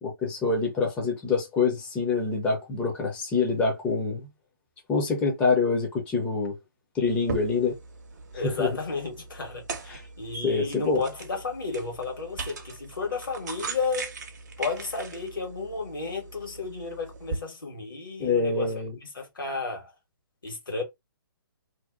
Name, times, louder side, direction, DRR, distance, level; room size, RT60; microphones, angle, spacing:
voice 1, 0.0-4.3 4.9-6.6 6.9-7.8 8.3-8.8 9.9-10.0 10.4-11.0 18.2-19.0, left 4 dB, 10° left, 0.4 m, -26 dB
sound 1, 7.0-17.4, right 4 dB, 50° right, 0.6 m, -40 dB
voice 2, 8.4-14.1 14.6-19.9 20.4-20.8, left 4 dB, 65° left, 1.2 m, -33 dB
2.6 x 2.0 x 2.4 m
figure-of-eight pair, 130°, 12 cm